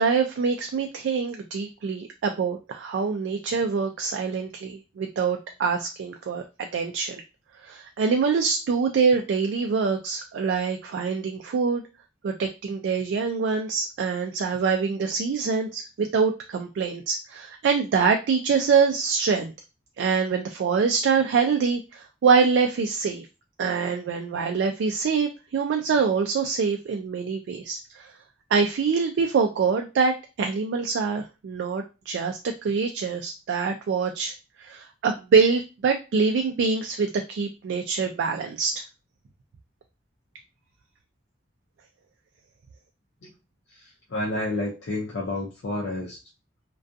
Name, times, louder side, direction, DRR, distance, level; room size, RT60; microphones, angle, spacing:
voice 1, 0.0-6.4 6.7-7.2 7.6-11.8 12.2-19.5 20.0-23.3 23.6-28.0 28.5-34.3 34.7-38.7, right 5 dB, 85° right, 4 dB, 0.3 m, -25 dB
voice 2, 43.7-46.2, left 2 dB, 75° left, -4 dB, 0.5 m, -30 dB
2.4 x 2.2 x 2.5 m, 0.29 s
head